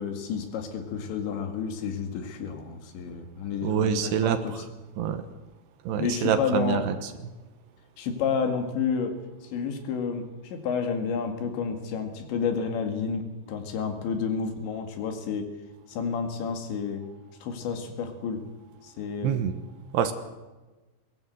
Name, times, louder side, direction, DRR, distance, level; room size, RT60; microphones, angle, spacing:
voice 1, 0.0-4.6 6.0-6.9 8.0-9.2 9.5-15.5 15.9-17.0 17.4-18.5 18.8-19.4, left 6 dB, 75° left, 6 dB, 4.3 m, -30 dB
voice 2, 3.6-4.6 5.0-5.3 5.9-7.1 19.2-19.5 19.9-20.1, right 8 dB, 75° right, 9 dB, 3.0 m, -26 dB
21.5 x 17.0 x 7.9 m, 1.2 s
omnidirectional pair, 5.2 m